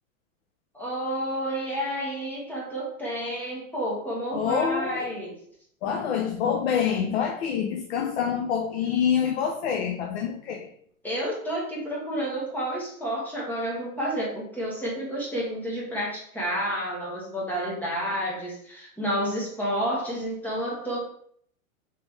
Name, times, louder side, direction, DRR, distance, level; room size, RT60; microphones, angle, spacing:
voice 1, 0.7-5.3 11.0-21.0, equal, 5° left, -5 dB, 1.0 m, -30 dB
voice 2, 4.3-5.1 5.8-10.7, left 7 dB, 50° left, 3 dB, 0.5 m, -26 dB
3.3 x 3.2 x 3.1 m, 0.64 s
hypercardioid pair, 135°, 43 cm